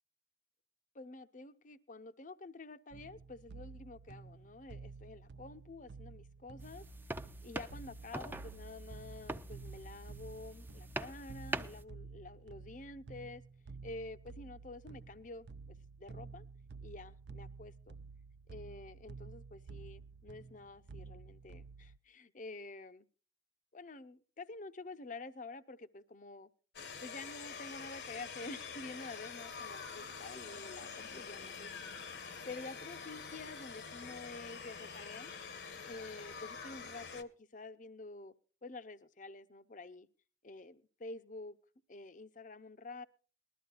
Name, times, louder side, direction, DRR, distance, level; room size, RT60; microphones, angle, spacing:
voice 1, 0.9-6.9 7.4-13.4 13.8-15.5 16.0-16.5 16.8-18.0 18.5-23.1 23.7-26.5 27.0-31.7 32.5-35.3 35.8-38.3 38.6-40.1 40.4-41.6 41.9-43.0, left 3 dB, 45° left, 12 dB, 0.7 m, -49 dB
sound 1, 2.9-22.0, right 4 dB, 65° right, 0.5 m, -52 dB
sound 2, 6.6-11.8, right 1 dB, 10° right, 0.5 m, -44 dB
sound 3, 26.7-37.2, left 5 dB, 65° left, 1.0 m, -46 dB
20.0 x 13.0 x 2.5 m, 0.39 s
head